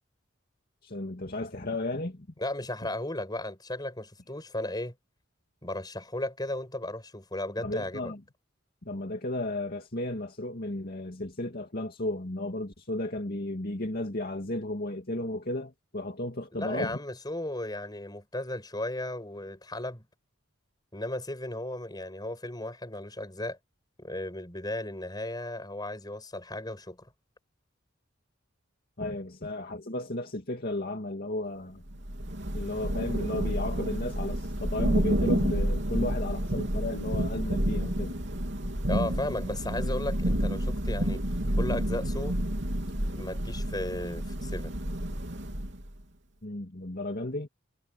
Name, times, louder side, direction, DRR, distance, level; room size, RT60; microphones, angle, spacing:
voice 1, 0.8-2.3 7.6-8.2 8.8-17.0 29.0-31.8 32.5-38.1 46.4-47.5, left 1 dB, 50° left, 2.2 m, -34 dB
voice 2, 2.4-4.9 5.6-8.1 16.5-20.1 20.9-23.6 24.0-27.1 38.9-41.2 41.6-42.4 43.1-44.7, left 1 dB, 20° left, 7.3 m, -35 dB
Thunder / Rain, 31.9-46.0, equal, 60° right, 3.4 m, -30 dB
head